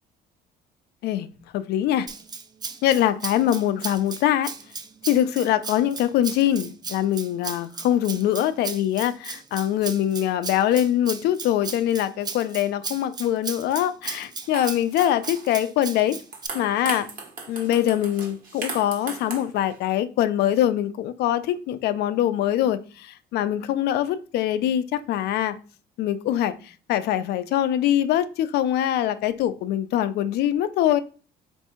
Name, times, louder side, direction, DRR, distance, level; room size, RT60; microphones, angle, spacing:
voice 1, 1.5-2.1 2.8-4.5 5.1-16.2 16.5-17.1 17.5-25.6 26.0-31.0, left 11 dB, 75° left, 0.5 m, -23 dB
Rattle (instrument), 2.1-16.5, right 5 dB, 25° right, 0.5 m, -36 dB
sound 1, 14.2-14.3 14.5-15.7 16.1-19.8, right 4 dB, 55° right, 1.2 m, -37 dB
3.4 x 2.6 x 4.3 m
cardioid pair, 110°, 17 cm